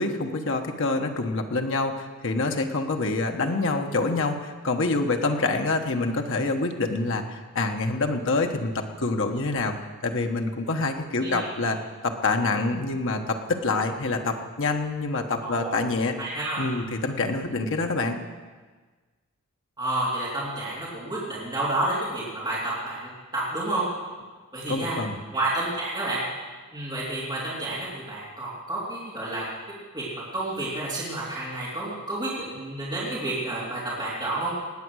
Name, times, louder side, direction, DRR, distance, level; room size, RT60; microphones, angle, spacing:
voice 1, 0.0-9.8 10.0-11.8 12.0-16.1 16.6-18.2 24.7-25.2, left 3 dB, 60° left, 4 dB, 1.2 m, -26 dB
voice 2, 15.4-15.7 16.2-16.6 19.8-22.6 22.8-23.0 23.3-23.9 24.5-25.0 25.3-26.2 26.7-29.4 29.9-30.0 30.3-34.5, right 2 dB, 20° right, -8 dB, 3.3 m, -30 dB
19.0 x 8.6 x 6.4 m, 1.4 s
head